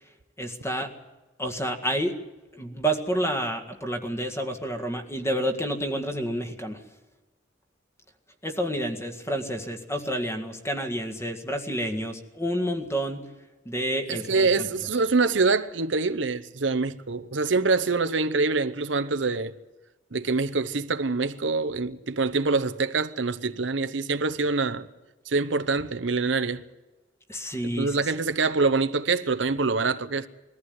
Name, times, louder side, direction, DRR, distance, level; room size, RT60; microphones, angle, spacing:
voice 1, 0.4-0.9 1.4-2.2 2.6-6.8 8.4-13.2 13.7-14.7 27.3-28.0, right 1 dB, 15° left, 1.9 m, -29 dB
voice 2, 14.1-19.5 20.1-24.9 25.3-26.6 27.6-30.3, right 4 dB, 75° right, 0.9 m, -25 dB
21.5 x 14.5 x 9.4 m
head